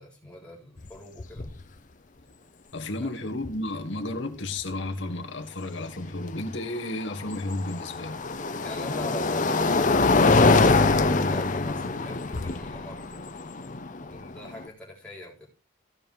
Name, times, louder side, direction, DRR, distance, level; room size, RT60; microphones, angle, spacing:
voice 1, 0.0-1.5 3.0-3.1 8.6-13.1 14.1-15.5, left 1 dB, 5° left, 3.6 m, -43 dB
sound 1, 0.8-0.9 1.2-1.6 3.4-3.5 6.5-14.6, left 3 dB, 40° left, 0.7 m, -24 dB
voice 2, 2.7-8.2, left 2 dB, 65° left, 1.5 m, -32 dB
15.5 x 5.3 x 4.6 m
head